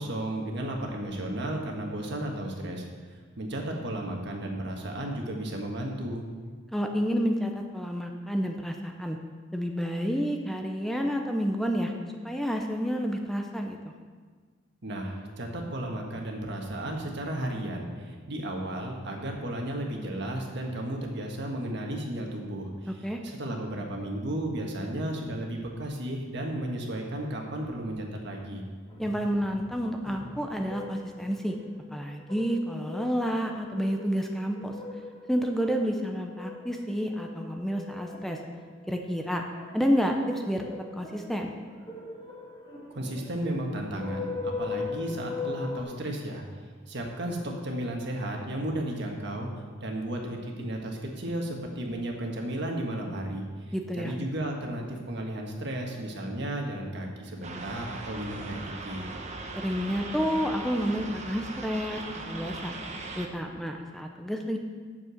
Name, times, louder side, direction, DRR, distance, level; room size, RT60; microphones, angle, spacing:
voice 1, 0.0-2.8 3.1-6.3 14.8-23.0 23.2-28.6 42.9-46.4 46.9-49.5 49.8-59.1, right 1 dB, 65° right, 1 dB, 1.6 m, -34 dB
voice 2, 6.7-9.2 9.5-11.9 12.2-13.9 22.9-23.2 29.0-31.6 31.9-34.7 35.3-38.4 38.9-39.4 39.7-41.5 53.7-54.1 59.6-62.8 63.2-64.6, equal, ahead, 2 dB, 0.6 m, -29 dB
sound 1, 28.9-45.8, left 4 dB, 25° left, 2.4 m, -41 dB
sound 2, 57.4-63.3, right 3 dB, 40° right, 0.9 m, -39 dB
8.5 x 7.1 x 6.4 m, 1.5 s
head